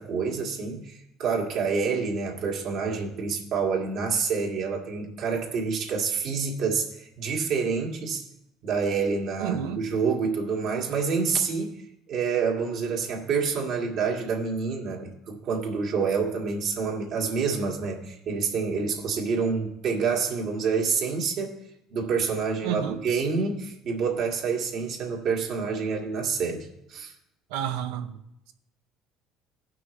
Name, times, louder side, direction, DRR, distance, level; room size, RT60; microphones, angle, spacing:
voice 1, 0.0-8.3 8.6-11.8 12.1-21.6 21.9-27.1, right 5 dB, 60° right, 1.9 m, -27 dB
voice 2, 9.4-9.8 22.6-23.0 27.5-28.2, right 9 dB, 90° right, 0.7 m, -30 dB
17.5 x 6.0 x 3.2 m
cardioid pair, 115°, 0 cm